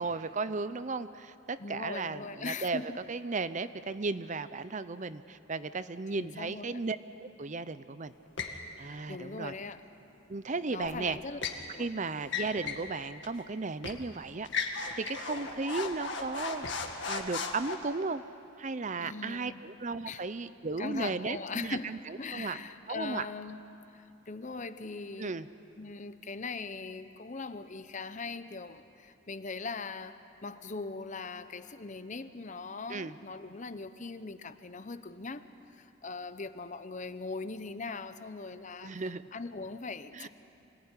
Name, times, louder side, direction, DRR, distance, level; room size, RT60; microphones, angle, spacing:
voice 1, 0.0-2.8 3.1-8.1 8.5-9.5 10.3-11.2 11.8-16.7 17.0-18.2 18.6-22.6 22.9-23.3 25.2-25.5 32.9-33.2 38.8-39.2 40.1-40.3, right 3 dB, 35° right, 13 dB, 0.6 m, -35 dB
voice 2, 1.6-3.0 6.1-6.8 9.1-9.8 10.7-11.4 11.7-11.9 19.0-19.7 20.1-20.2 20.8-23.6 23.9-25.4 25.8-38.9 39.3-40.3, left 4 dB, 35° left, 12 dB, 0.8 m, -40 dB
sound 1, 8.4-8.6 10.8-11.6 12.2-12.9 13.2-13.3 13.8-14.0 14.4-17.7, left 5 dB, 60° left, 2.1 m, -36 dB
26.5 x 19.0 x 9.8 m, 2.8 s
head